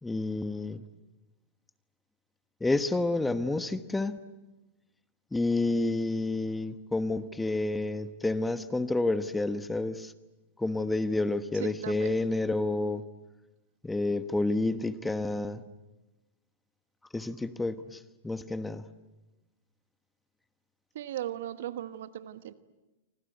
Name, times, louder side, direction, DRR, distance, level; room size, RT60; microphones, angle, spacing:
voice 1, 0.0-0.8 2.6-4.2 5.3-10.1 10.6-13.0 13.8-15.6 17.1-18.9, left 2 dB, 10° left, 12 dB, 1.2 m, -29 dB
voice 2, 11.5-12.1 20.9-22.5, right 12 dB, 70° right, 12 dB, 1.3 m, -37 dB
28.0 x 25.0 x 8.1 m, 1.1 s
hypercardioid pair, 125°, 0 cm